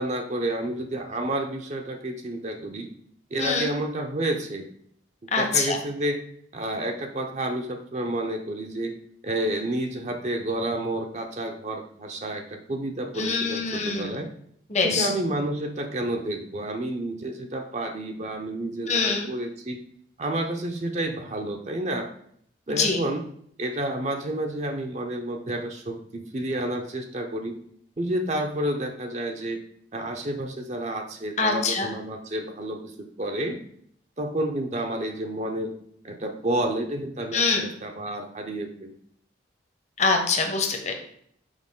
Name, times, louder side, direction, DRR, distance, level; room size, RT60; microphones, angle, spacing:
voice 1, 0.0-2.9 3.3-4.6 5.4-6.2 6.5-8.9 9.2-14.3 14.8-19.8 20.2-22.1 22.7-23.2 23.6-27.5 28.0-29.6 29.9-33.6 34.2-35.7 36.0-38.9, right 1 dB, 35° right, 4 dB, 0.6 m, -30 dB
voice 2, 3.4-3.7 5.3-5.8 13.2-14.1 14.7-15.1 18.9-19.3 22.8-23.0 31.4-31.9 37.3-37.6 40.0-40.9, left 4 dB, 40° left, 4 dB, 0.9 m, -24 dB
6.3 x 4.7 x 3.6 m, 0.67 s
head